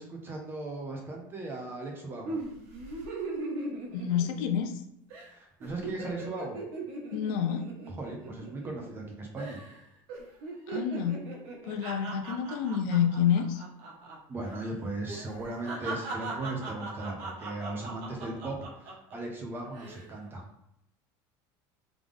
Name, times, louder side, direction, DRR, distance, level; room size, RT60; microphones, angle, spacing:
voice 1, 0.0-2.4 5.3-6.6 7.9-9.6 14.3-20.4, right 2 dB, 20° right, 1 dB, 0.8 m, -37 dB
sound 1, 2.3-4.8 5.1-5.3 5.6-9.1 9.4-9.8 10.1-14.2 14.4-14.6 15.1-19.2 19.6-20.1, right 3 dB, 80° right, 1.3 m, -39 dB
voice 2, 3.9-4.8 7.1-7.6 10.7-11.2 11.6-13.6, left 8 dB, 75° left, 6 dB, 0.5 m, -28 dB
3.6 x 3.4 x 3.5 m, 0.79 s
cardioid pair, 160°, 10 cm